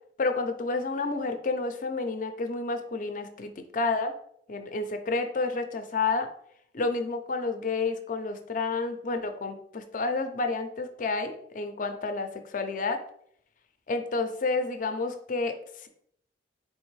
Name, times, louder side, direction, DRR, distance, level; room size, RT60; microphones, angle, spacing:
voice 1, 0.2-4.1 4.5-6.3 6.7-13.0 13.9-15.9, left 3 dB, 45° left, 7 dB, 0.5 m, -30 dB
4.3 x 3.4 x 3.2 m, 0.66 s
head